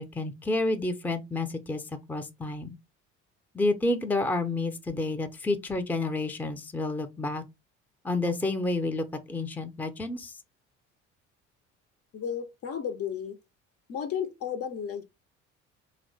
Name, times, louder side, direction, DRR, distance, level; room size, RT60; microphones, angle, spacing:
voice 1, 0.0-1.8 2.1-2.7 3.5-7.4 8.0-10.3, left 2 dB, 5° left, 0.5 m, -29 dB
voice 2, 12.1-13.4 13.9-15.0, left 8 dB, 45° left, 0.6 m, -33 dB
2.9 x 2.1 x 4.0 m
hypercardioid pair, 60°, 35 cm